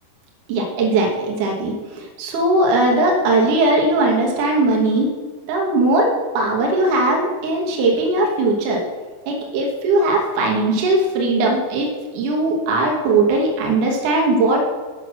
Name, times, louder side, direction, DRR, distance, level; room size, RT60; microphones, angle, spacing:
voice 1, 0.5-5.1 5.5-8.8 9.3-11.9 12.1-14.6, right 2 dB, 80° right, -1 dB, 1.8 m, -19 dB
9.1 x 6.0 x 6.3 m, 1.4 s
omnidirectional pair, 5.6 m